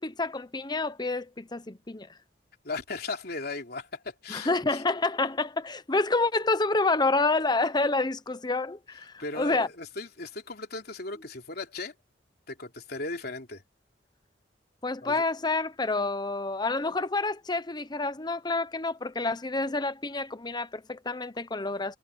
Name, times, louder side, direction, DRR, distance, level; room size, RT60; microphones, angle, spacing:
voice 1, 0.0-2.1 4.3-9.7 14.8-22.0, left 3 dB, 25° left, 1.0 m, -28 dB
voice 2, 2.6-4.8 9.2-11.9 12.5-13.6 15.0-15.2, left 3 dB, 60° left, 3.5 m, -37 dB
head